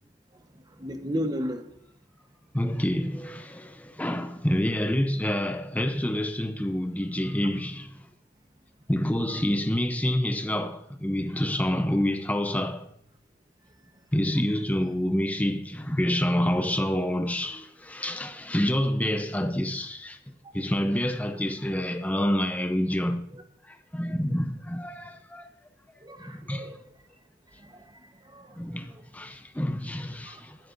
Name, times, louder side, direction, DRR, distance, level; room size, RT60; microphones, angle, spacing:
voice 1, 0.8-1.6 20.4-20.6 23.3-23.4 26.0-26.8 27.6-27.8 28.2-28.6 28.9-29.0 30.3-30.4, equal, 20° right, 1.0 m, -34 dB
voice 2, 2.5-7.9 8.9-12.9 14.1-20.2 20.5-23.2 23.7-25.5 26.2-26.7 28.6-30.6, left 1 dB, 10° left, 0.6 m, -27 dB
20.5 x 9.7 x 2.6 m
head